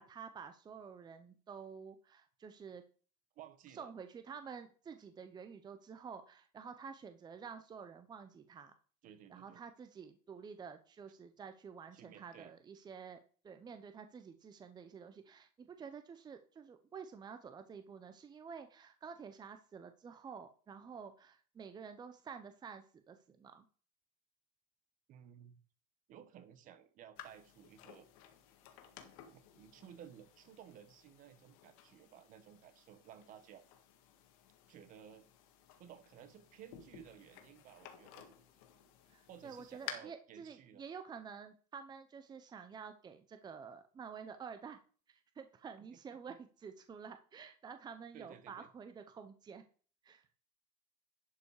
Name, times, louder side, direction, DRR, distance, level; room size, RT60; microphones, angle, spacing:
voice 1, 0.0-2.8 3.7-8.7 9.3-23.7 39.1-44.8 45.1-49.6 50.0-50.3, right 6 dB, 25° right, 8 dB, 0.8 m, -50 dB
voice 2, 3.3-3.9 9.0-9.6 11.9-12.5 25.1-25.6 26.1-28.1 29.3-33.6 34.7-35.2 35.8-38.3 39.3-40.8 46.3-46.4 48.1-48.7, right 9 dB, 50° right, 12 dB, 1.3 m, -56 dB
sound 1, 27.2-39.9, left 12 dB, 80° left, 1.9 m, -55 dB
11.5 x 5.5 x 4.8 m, 0.42 s
supercardioid pair, 125°, 18 cm